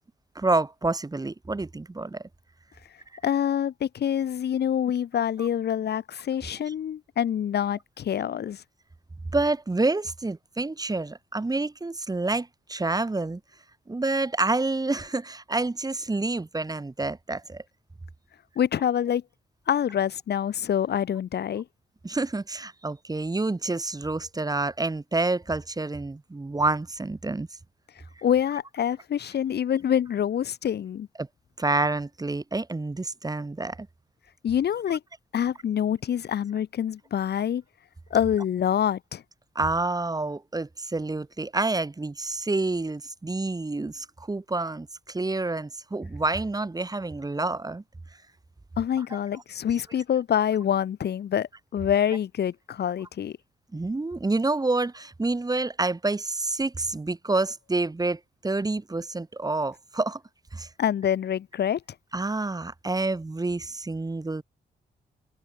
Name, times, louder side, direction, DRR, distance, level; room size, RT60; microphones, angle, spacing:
voice 1, 0.3-2.2 9.3-13.4 13.9-17.6 22.0-27.5 31.2-31.3 31.6-33.9 39.5-47.8 49.1-49.2 53.7-60.2 60.5-60.7 62.1-64.4, right 2 dB, 20° right, 3.0 m, -28 dB
voice 2, 3.2-8.6 18.5-19.2 19.7-21.6 28.2-31.1 34.4-35.0 35.3-37.6 38.1-39.2 48.8-53.4 60.8-61.8, left 9 dB, 75° left, 1.7 m, -26 dB
cardioid pair, 85°, 17 cm